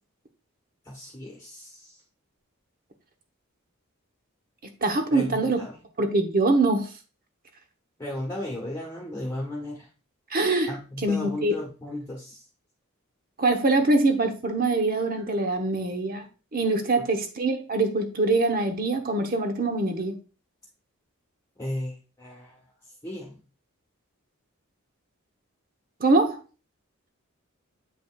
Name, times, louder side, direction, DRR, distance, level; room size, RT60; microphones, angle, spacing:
voice 1, 0.8-2.0 5.1-5.8 8.0-9.9 10.7-12.4 21.6-22.6 23.0-23.4, left 1 dB, 15° left, 1.3 m, -35 dB
voice 2, 4.8-5.6 6.0-6.9 10.3-10.7 11.0-11.5 13.4-16.3 16.5-20.1 26.0-26.4, right 2 dB, 40° right, 1.0 m, -23 dB
8.2 x 5.2 x 2.4 m
head